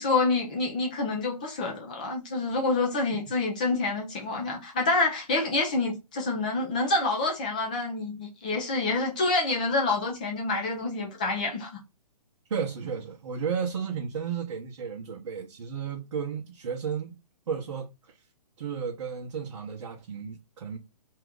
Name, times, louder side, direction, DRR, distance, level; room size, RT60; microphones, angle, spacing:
voice 1, 0.0-11.8, left 3 dB, 15° left, 0.3 m, -27 dB
voice 2, 12.5-17.1 17.5-17.9 18.6-20.8, right 6 dB, 50° right, 0.8 m, -33 dB
2.8 x 2.4 x 3.4 m
hypercardioid pair, 155°, 20 cm